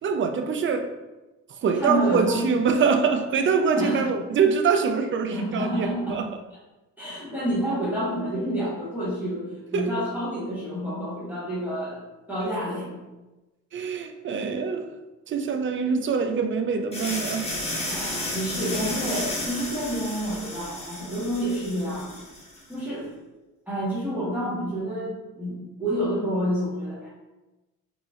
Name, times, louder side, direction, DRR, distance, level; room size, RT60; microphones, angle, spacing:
voice 1, 0.0-0.9 1.6-6.3 9.7-9.9 13.7-15.0 15.3-17.5, right 5 dB, 40° right, 0.4 m, -24 dB
voice 2, 1.8-2.5 3.8-4.1 5.3-6.2 7.0-12.0 12.3-13.0 17.9-22.2 22.7-23.1 23.7-27.1, equal, 5° right, 1.4 m, -29 dB
sound 1, 16.9-22.6, left 1 dB, 20° left, 1.3 m, -32 dB
3.9 x 3.0 x 2.4 m
cardioid pair, 90°, 30 cm